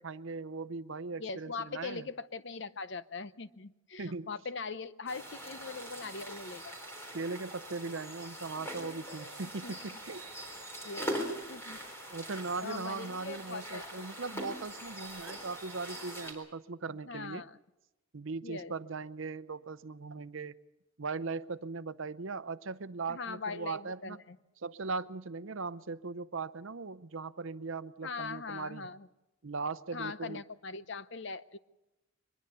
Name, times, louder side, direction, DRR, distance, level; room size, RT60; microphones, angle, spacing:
voice 1, 0.0-2.1 4.0-4.3 7.1-10.2 12.1-17.4 18.1-20.6 21.0-24.2 24.6-28.9 29.4-30.4, right 4 dB, 65° right, 14 dB, 0.7 m, -39 dB
voice 2, 1.2-6.7 9.4-9.7 10.8-11.1 11.5-11.8 12.6-14.1 17.0-17.6 18.4-18.7 23.1-24.4 28.0-29.1 29.9-31.6, left 4 dB, 55° left, 14 dB, 0.7 m, -41 dB
sound 1, 5.1-16.3, equal, 10° left, 4.0 m, -42 dB
23.5 x 21.0 x 6.9 m, 0.96 s
head